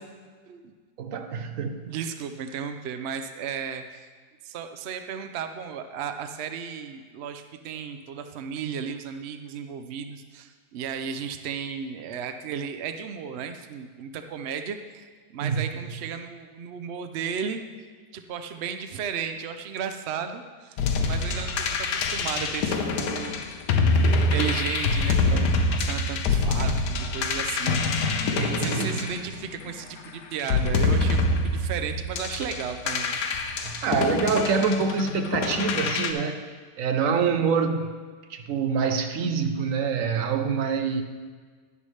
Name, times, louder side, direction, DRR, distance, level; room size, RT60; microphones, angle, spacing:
voice 1, 1.0-1.9 15.4-15.6 25.3-25.5 28.4-28.9 33.6-36.4 36.8-37.9 38.3-41.0, right 5 dB, 60° right, 7 dB, 0.9 m, -26 dB
voice 2, 1.8-4.1 4.4-17.9 18.1-23.4 24.0-33.2, right 7 dB, 90° right, 8 dB, 0.5 m, -34 dB
sound 1, 20.8-29.8 30.4-36.1, left 3 dB, 70° left, 1.3 m, -25 dB
11.0 x 10.5 x 3.2 m, 1.5 s
omnidirectional pair, 1.9 m